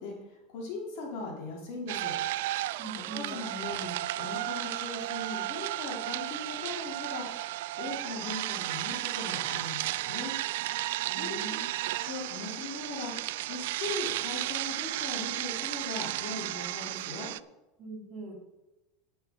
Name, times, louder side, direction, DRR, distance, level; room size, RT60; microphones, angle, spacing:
voice 1, 0.0-2.1 3.1-7.3 7.8-10.3 11.1-11.4 11.9-17.3, left 3 dB, 60° left, -1 dB, 4.1 m, -39 dB
sound 1, 1.9-17.4, right 16 dB, 75° right, 0.3 m, -34 dB
voice 2, 2.8-3.4 11.0-11.7 17.8-18.3, right 2 dB, 30° right, -2 dB, 3.9 m, -42 dB
9.6 x 8.8 x 5.6 m, 1.0 s
supercardioid pair, 130°, 0 cm